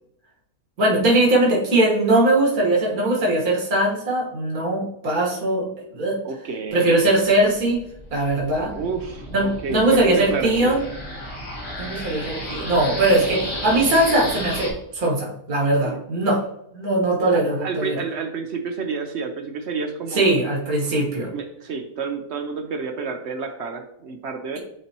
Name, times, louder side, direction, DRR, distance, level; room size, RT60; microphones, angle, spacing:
voice 1, 0.8-5.7 5.9-6.2 6.7-7.8 8.1-8.7 9.3-10.8 11.8-16.4 16.7-18.0 20.2-21.3, right 1 dB, 75° right, -3 dB, 2.0 m, -20 dB
voice 2, 6.2-7.1 8.7-10.8 13.1-13.5 15.8-16.0 17.3-20.3 21.3-24.6, right 5 dB, 55° right, 6 dB, 0.8 m, -30 dB
sound 1, 7.4-14.7, equal, 65° left, 2.4 m, -33 dB
9.7 x 4.2 x 2.9 m, 0.77 s
omnidirectional pair, 1.6 m